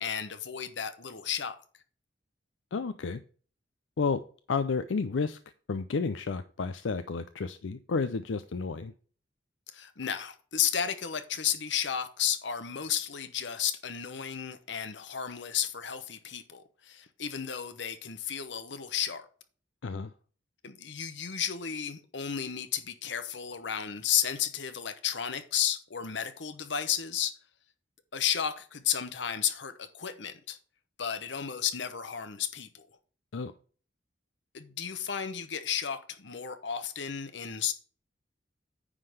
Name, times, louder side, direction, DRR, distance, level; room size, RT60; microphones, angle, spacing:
voice 1, 0.0-1.6 9.7-19.3 20.6-27.3 28.1-30.6 31.0-32.8 34.5-37.7, left 9 dB, 70° left, 1.0 m, -33 dB
voice 2, 2.7-3.2 4.0-4.2 4.5-5.4 5.7-8.9 19.8-20.1 33.3-33.5, left 4 dB, 85° left, 0.5 m, -31 dB
9.8 x 3.8 x 6.5 m
head